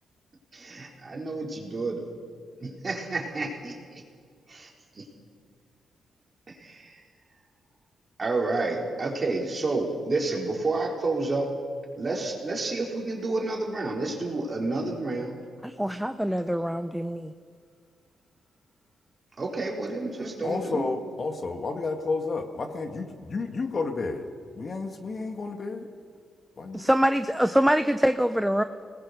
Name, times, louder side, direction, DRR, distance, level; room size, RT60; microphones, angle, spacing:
voice 1, 0.5-2.1 2.6-4.0 4.5-5.0 6.5-7.0 8.2-11.5 12.0-15.3 19.4-20.9, right 3 dB, 30° right, 0 dB, 3.9 m, -30 dB
voice 2, 15.6-17.3 26.7-28.6, equal, ahead, 10 dB, 0.6 m, -24 dB
voice 3, 20.4-24.3 24.5-25.9 26.6-26.9, left 3 dB, 40° left, 6 dB, 1.8 m, -31 dB
26.0 x 19.5 x 6.6 m, 2.1 s
cardioid pair, 125°, 0 cm